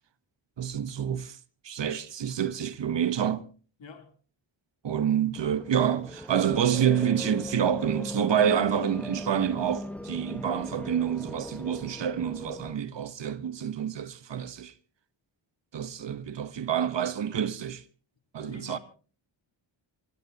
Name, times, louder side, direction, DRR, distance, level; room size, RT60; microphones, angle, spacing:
voice 1, 0.6-1.4 1.6-3.5 4.8-14.7 15.7-17.8 18.3-18.8, right 9 dB, 65° right, 1.2 m, -28 dB
sound 1, 5.4-12.7, left 1 dB, 5° left, 1.1 m, -39 dB
voice 2, 18.4-18.8, left 5 dB, 65° left, 3.3 m, -45 dB
27.5 x 15.0 x 2.8 m
wide cardioid pair, 95°, 47 cm